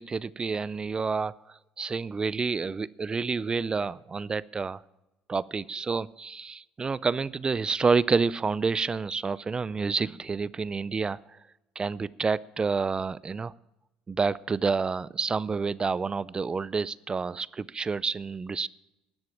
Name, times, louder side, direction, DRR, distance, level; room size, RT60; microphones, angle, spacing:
voice 1, 0.0-4.8 5.3-11.4 11.8-13.5 14.1-18.7, right 4 dB, 25° right, 21 dB, 0.4 m, -29 dB
12.5 x 7.8 x 8.5 m, 0.94 s
hypercardioid pair, 65°, 3 cm